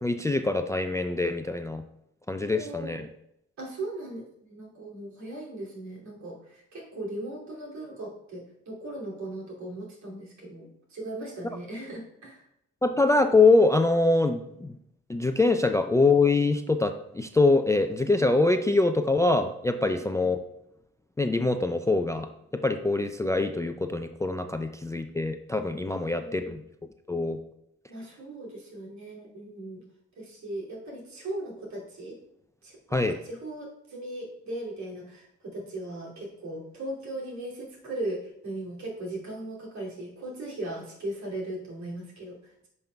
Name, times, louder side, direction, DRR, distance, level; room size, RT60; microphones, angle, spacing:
voice 1, 0.0-1.8 2.3-3.0 12.8-14.7 15.1-20.4 21.2-22.3 22.5-26.6 27.1-27.4 32.9-33.2, left 3 dB, 10° left, 8 dB, 0.3 m, -24 dB
voice 2, 2.4-3.1 3.6-12.5 19.9-20.3 25.9-26.6 27.9-29.8 30.2-32.2 32.6-42.7, right 1 dB, 65° right, -3 dB, 2.7 m, -38 dB
10.0 x 5.4 x 2.3 m, 0.78 s
cardioid pair, 90°, 30 cm